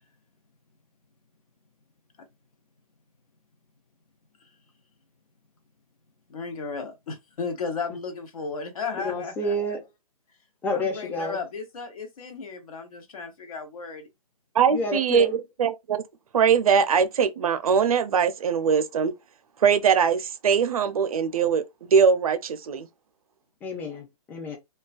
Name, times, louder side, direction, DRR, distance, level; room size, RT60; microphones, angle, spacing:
voice 1, 6.3-9.5 10.7-14.1 14.8-14.9, left 4 dB, 70° left, 0.9 m, -34 dB
voice 2, 8.9-9.8 10.6-11.4 14.7-15.4 23.6-24.6, left 1 dB, 10° left, 0.5 m, -30 dB
voice 3, 14.6-16.0 16.3-19.1 19.6-21.6 21.9-22.9, right 6 dB, 70° right, 0.5 m, -21 dB
2.3 x 2.2 x 2.4 m
hypercardioid pair, 135°, 19 cm